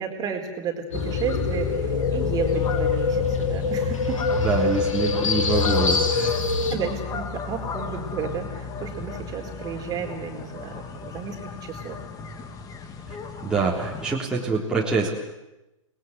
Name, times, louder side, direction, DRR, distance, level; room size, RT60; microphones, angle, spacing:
voice 1, 0.0-4.2 6.7-12.0, right 6 dB, 25° right, 3 dB, 4.3 m, -32 dB
sound 1, 0.9-6.8, left 4 dB, 75° left, 3.4 m, -25 dB
sound 2, 0.9-14.2, left 6 dB, 20° left, 2.6 m, -33 dB
voice 2, 4.4-6.4 13.1-13.2 13.4-15.1, right 4 dB, 5° right, -4 dB, 3.7 m, -25 dB
29.5 x 21.0 x 8.1 m, 0.96 s
figure-of-eight pair, 115°, 17 cm